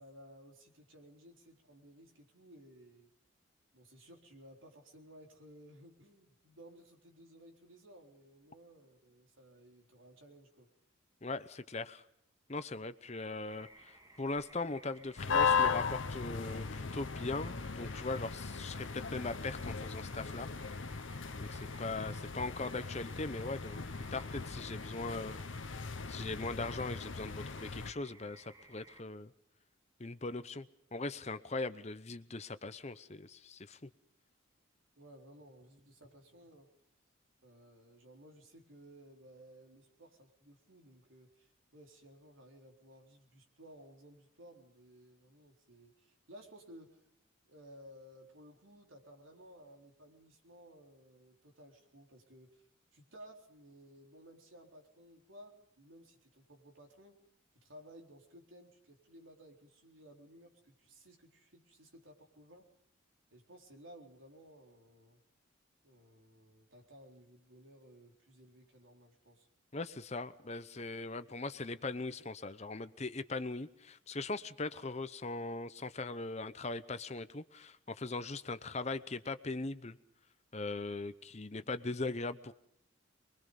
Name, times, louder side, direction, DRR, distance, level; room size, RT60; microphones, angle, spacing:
voice 1, 0.0-3.1 3.7-10.7 35.0-36.7 37.4-47.0 47.4-52.7 52.9-57.2 57.5-62.7 63.3-65.2 65.8-69.5, equal, 70° right, 2 dB, 4.0 m, -57 dB
voice 2, 11.2-12.0 12.5-20.5 21.4-25.4 26.1-29.3 30.0-33.9 69.7-80.0 80.5-82.5, left 3 dB, 30° left, 12 dB, 0.8 m, -40 dB
sound 1, 13.5-29.0, right 2 dB, 20° right, 1.9 m, -59 dB
sound 2, 15.2-27.9, left 5 dB, 65° left, 0.9 m, -37 dB
24.5 x 22.5 x 5.3 m, 0.73 s
head